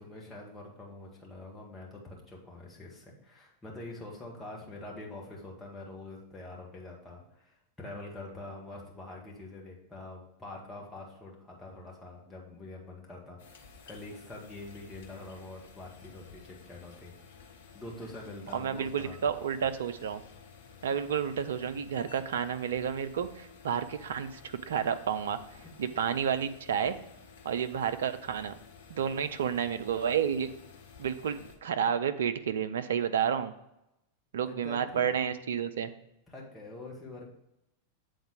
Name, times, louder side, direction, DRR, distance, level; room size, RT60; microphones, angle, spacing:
voice 1, 0.0-17.1 17.7-19.3 34.4-35.2 36.3-37.3, left 2 dB, 15° left, -3 dB, 1.9 m, -45 dB
sound 1, 13.4-31.6, left 5 dB, 55° left, 1.0 m, -53 dB
voice 2, 18.5-20.2 20.8-25.4 25.8-27.0 27.4-28.6 28.9-30.5 31.0-33.5 34.3-35.9, right 8 dB, 60° right, 10 dB, 0.5 m, -30 dB
7.9 x 3.9 x 4.9 m, 0.87 s
figure-of-eight pair, 90°, 0 cm